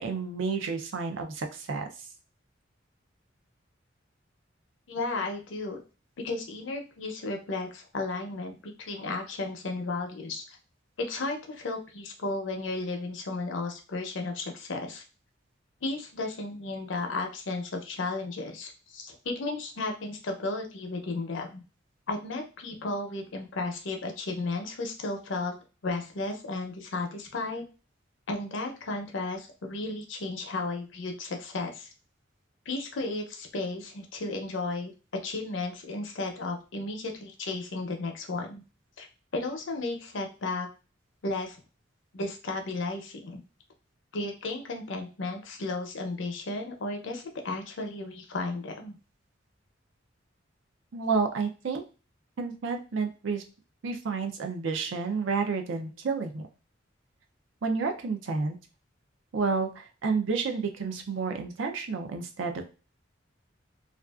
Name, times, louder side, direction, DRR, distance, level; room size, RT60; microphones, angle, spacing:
voice 1, 0.0-1.9 50.9-51.8 52.4-53.4 53.8-56.4 57.6-58.6 59.3-62.6, right 4 dB, 80° right, 6 dB, 0.5 m, -30 dB
voice 2, 4.9-5.8 6.2-10.6 11.0-15.0 15.8-21.6 22.1-25.5 25.8-27.6 28.3-31.9 32.7-34.9 35.2-38.6 39.0-39.1 39.3-40.7 41.2-41.6 42.1-43.4 44.1-49.0, left 2 dB, 75° left, 3 dB, 0.6 m, -34 dB
2.5 x 2.3 x 2.3 m, 0.33 s
head